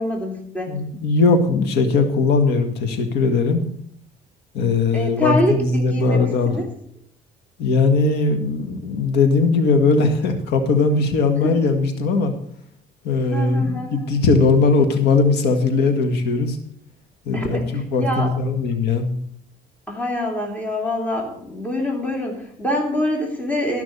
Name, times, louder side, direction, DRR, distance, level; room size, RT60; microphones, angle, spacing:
voice 1, 0.0-0.7 4.9-6.7 11.4-11.5 13.3-14.1 17.3-18.3 19.9-23.8, left 1 dB, 10° left, 0 dB, 2.6 m, -25 dB
voice 2, 0.7-3.6 4.5-6.6 7.6-12.3 13.0-16.6 17.2-19.1, left 3 dB, 80° left, 7 dB, 1.7 m, -19 dB
13.0 x 5.9 x 6.7 m, 0.66 s
cardioid pair, 110°, 17 cm